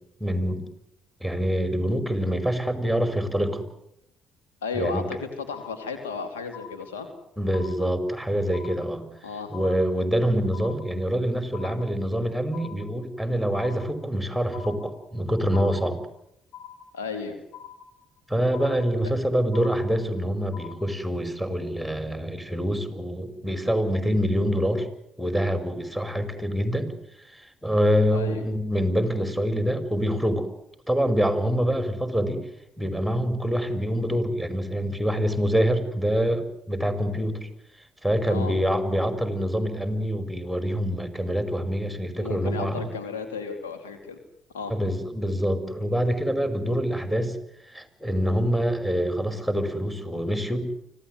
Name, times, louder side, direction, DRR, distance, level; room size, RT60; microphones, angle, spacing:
voice 1, 0.2-0.6 1.2-3.7 4.7-5.0 7.4-9.1 9.5-16.0 18.3-24.9 25.2-26.9 27.3-30.5 30.9-32.4 32.8-37.5 38.0-42.9 44.7-47.4 47.7-50.7, equal, 5° left, 9 dB, 5.3 m, -25 dB
voice 2, 4.6-7.1 9.2-9.5 16.9-17.4 28.1-28.4 38.3-38.5 42.2-44.2 44.5-44.7, left 5 dB, 90° left, 6 dB, 2.9 m, -33 dB
sound 1, 5.5-6.2 6.5-7.2 7.5-8.2 8.5-9.2 9.5-10.2 10.5-11.2 11.5-12.2 12.5-13.2 13.5-14.2 14.5-15.2 15.5-16.2 16.5-17.2 17.5-18.2 18.5-19.2 19.5-20.2 20.5-20.8, left 9 dB, 55° left, 6.3 m, -45 dB
25.0 x 17.0 x 9.5 m, 0.76 s
hypercardioid pair, 50°, 0 cm